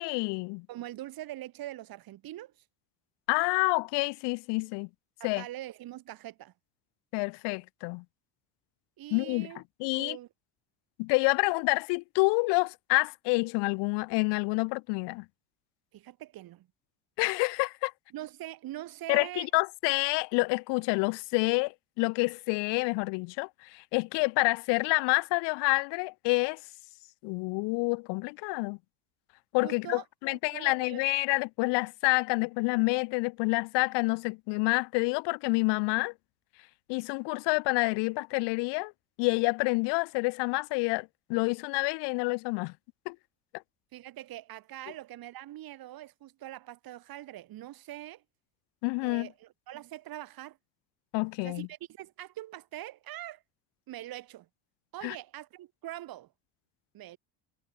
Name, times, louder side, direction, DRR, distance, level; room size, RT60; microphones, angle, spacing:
voice 1, 0.0-0.7 3.3-4.9 5.2-5.4 7.1-8.0 9.1-9.5 9.8-10.2 11.0-15.2 17.2-17.9 19.1-26.6 27.2-28.8 29.5-36.1 36.9-38.9 39.2-42.7 43.1-43.2 48.8-49.3 51.1-51.7 55.0-55.2, left 29 dB, 60° left, 0.6 m, -28 dB
voice 2, 0.7-2.5 5.2-6.5 9.0-9.6 9.9-10.3 15.9-16.7 18.1-19.5 29.6-31.0 43.9-48.2 49.0-50.6 51.4-53.4 53.9-54.5 54.9-56.3 56.9-57.2, right 14 dB, 45° right, 3.2 m, -43 dB
cardioid pair, 145°, 48 cm